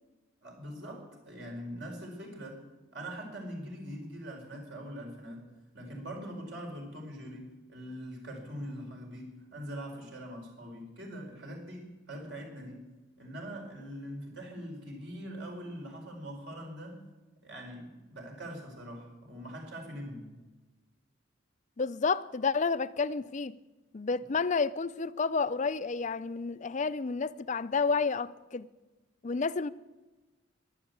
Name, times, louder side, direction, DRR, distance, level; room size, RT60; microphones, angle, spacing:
voice 1, 0.4-2.6 2.9-5.5 5.7-12.9 13.2-17.0 17.4-20.4, equal, 65° right, 5.0 m, -42 dB
voice 2, 21.8-23.6 23.9-28.7 29.2-29.7, left 4 dB, 40° left, 0.5 m, -30 dB
14.5 x 11.5 x 8.2 m
head